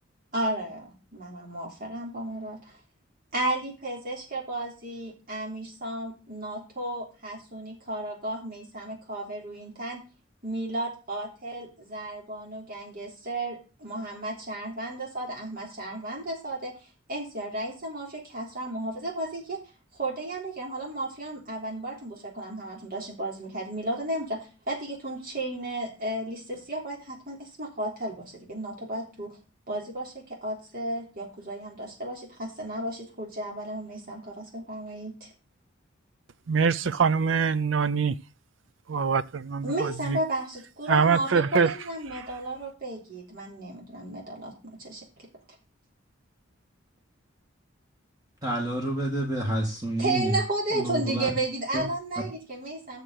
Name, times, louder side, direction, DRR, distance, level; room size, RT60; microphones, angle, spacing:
voice 1, 0.3-2.8 3.3-10.0 10.4-19.6 19.9-29.4 29.7-35.3 39.6-45.3 50.0-53.0, right 1 dB, 45° right, 3.5 m, -33 dB
voice 2, 36.5-38.1 38.9-39.6 40.9-41.7, right 5 dB, 70° right, 0.5 m, -23 dB
voice 3, 48.4-50.3 50.8-51.3 51.7-51.8, right 1 dB, 20° right, 1.9 m, -28 dB
6.9 x 6.4 x 7.5 m
head